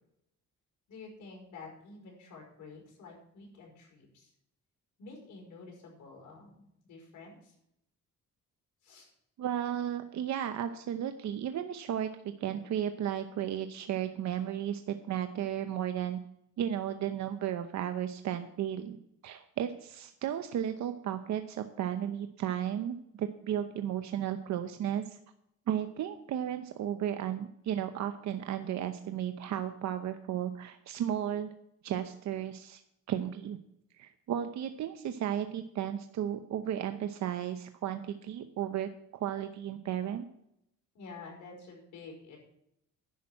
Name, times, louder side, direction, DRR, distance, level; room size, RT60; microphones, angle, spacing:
voice 1, 0.9-4.3 5.0-7.6 8.8-9.1 40.9-42.4, left 4 dB, 75° left, 0 dB, 5.2 m, -49 dB
voice 2, 9.4-16.2 16.6-25.2 25.7-31.5 31.8-32.8 33.1-33.6 34.0-40.3, right 10 dB, 65° right, 8 dB, 0.8 m, -34 dB
11.0 x 6.1 x 8.7 m, 0.76 s
cardioid pair, 90°, 30 cm